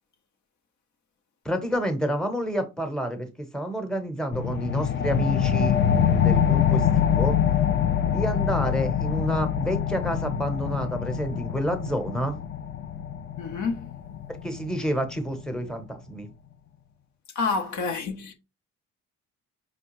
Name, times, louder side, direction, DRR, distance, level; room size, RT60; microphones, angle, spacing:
voice 1, 1.4-7.4 8.0-12.4 14.4-16.3, equal, ahead, 0.8 m, -29 dB
sound 1, 4.3-15.4, left 9 dB, 40° left, 0.4 m, -25 dB
voice 2, 13.4-13.9 17.3-18.4, left 4 dB, 70° left, 0.8 m, -28 dB
5.1 x 2.2 x 3.0 m
cardioid pair, 90°, 30 cm